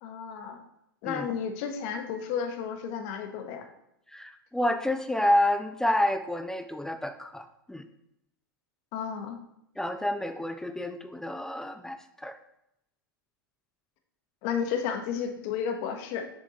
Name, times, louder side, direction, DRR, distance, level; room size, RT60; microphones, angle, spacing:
voice 1, 0.0-0.6 1.0-3.7 8.9-9.4 14.4-16.3, left 7 dB, 45° left, 6 dB, 0.9 m, -32 dB
voice 2, 4.1-7.9 9.8-12.4, left 1 dB, 5° left, 8 dB, 0.4 m, -29 dB
6.5 x 3.6 x 4.0 m, 0.80 s
figure-of-eight pair, 95°, 12 cm